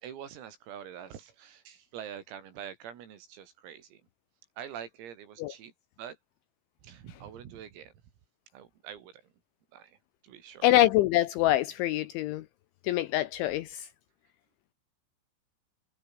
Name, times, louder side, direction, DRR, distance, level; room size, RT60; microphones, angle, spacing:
voice 1, 0.0-4.0 4.6-5.7 6.0-6.2 6.8-7.9 8.5-9.2 9.7-10.0 10.2-10.7, right 9 dB, 85° right, 6.0 m, -45 dB
voice 2, 10.6-12.4 12.8-13.9, left 15 dB, 75° left, 3.0 m, -25 dB
omnidirectional pair, 6.0 m